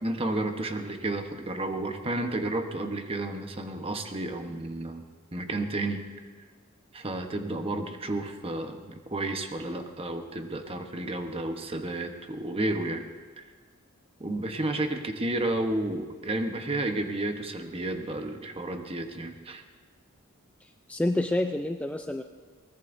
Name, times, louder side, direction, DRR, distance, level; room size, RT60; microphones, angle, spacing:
voice 1, 0.0-5.0 5.3-6.0 6.9-13.0 13.4-13.5 14.2-19.6, right 2 dB, 25° right, 5 dB, 1.0 m, -31 dB
voice 2, 20.6-22.2, left 1 dB, 5° left, 5 dB, 0.4 m, -28 dB
22.5 x 19.5 x 2.6 m, 1.5 s
head